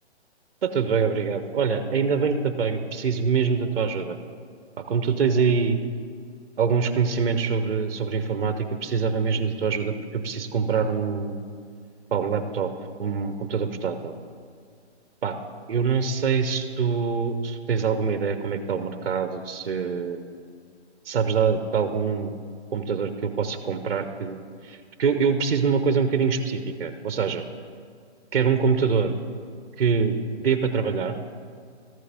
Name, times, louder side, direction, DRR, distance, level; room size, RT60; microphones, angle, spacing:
voice 1, 0.6-4.2 4.9-5.8 6.6-11.4 12.1-12.7 13.0-14.1 15.2-15.4 15.7-20.2 21.1-22.4 22.7-24.4 24.6-27.4 28.3-29.1 29.8-31.2, right 5 dB, 60° right, 9 dB, 0.7 m, -24 dB
13.5 x 7.5 x 3.4 m, 2.2 s
hypercardioid pair, 180°, 34 cm